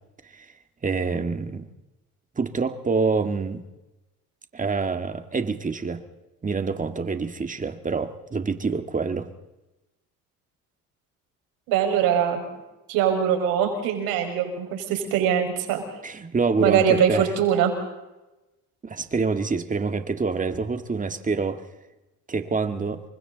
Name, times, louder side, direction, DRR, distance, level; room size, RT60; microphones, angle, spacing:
voice 1, 0.8-1.7 2.4-3.6 4.5-6.0 6.4-9.3 16.0-17.3 18.8-21.6 22.3-23.0, right 4 dB, 25° right, 8 dB, 1.9 m, -26 dB
voice 2, 11.7-12.4 12.9-15.8 16.6-17.7, right 8 dB, 90° right, 3 dB, 5.4 m, -22 dB
28.5 x 24.0 x 4.0 m, 1.0 s
cardioid pair, 105°, 34 cm